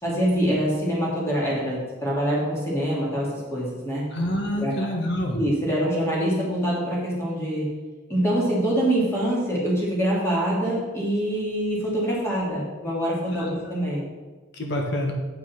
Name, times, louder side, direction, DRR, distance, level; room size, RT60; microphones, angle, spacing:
voice 1, 0.0-4.1 4.6-4.7 5.3-7.7 8.1-14.1, equal, 10° left, -6 dB, 2.7 m, -25 dB
voice 2, 4.1-5.4 13.3-13.5 14.5-15.1, left 1 dB, 55° left, 1 dB, 1.5 m, -27 dB
7.9 x 6.0 x 5.9 m, 1.3 s
head